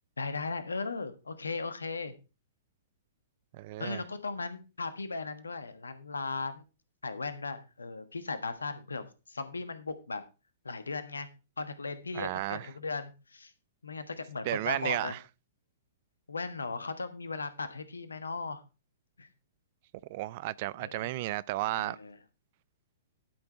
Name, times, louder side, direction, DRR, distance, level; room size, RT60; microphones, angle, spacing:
voice 1, 0.2-2.1 3.8-6.7 7.0-10.2 10.6-11.3 11.6-13.5 13.8-15.1 16.3-18.6 19.2-19.3 20.8-21.1 21.8-22.2, left 4 dB, 75° left, 1.3 m, -37 dB
voice 2, 3.5-4.0 12.1-12.7 14.4-15.2 20.1-22.0, right 17 dB, 40° right, 0.5 m, -33 dB
12.0 x 6.0 x 4.4 m
figure-of-eight pair, 110°, 0 cm